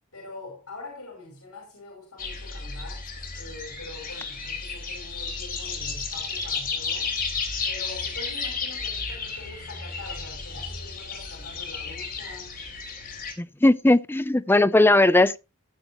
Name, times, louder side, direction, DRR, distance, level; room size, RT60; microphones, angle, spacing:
voice 1, 0.1-3.1 3.3-7.1 7.6-12.6, left 2 dB, 70° left, 5.5 m, -43 dB
sound 1, 2.2-13.3, left 5 dB, 40° left, 3.4 m, -33 dB
voice 2, 13.4-15.4, left 2 dB, 10° left, 0.4 m, -18 dB
17.0 x 7.6 x 3.0 m
head